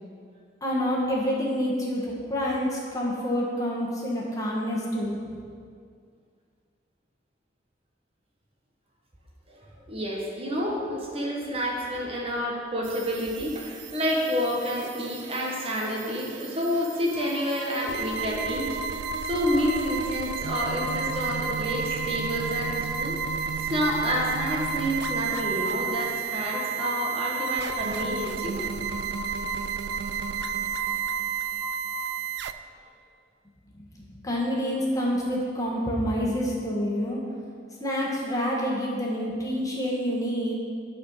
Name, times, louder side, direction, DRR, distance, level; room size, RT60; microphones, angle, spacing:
voice 1, 0.6-5.3 33.9-37.2 37.8-40.6, equal, 20° left, -4 dB, 1.5 m, -28 dB
voice 2, 9.5-28.7, equal, 30° right, -2 dB, 1.2 m, -29 dB
sound 1, 12.8-32.5, right 8 dB, 65° right, 0.3 m, -33 dB
sound 2, 17.1-32.0, left 1 dB, 55° left, 1.1 m, -37 dB
11.0 x 4.3 x 5.7 m, 2.1 s
head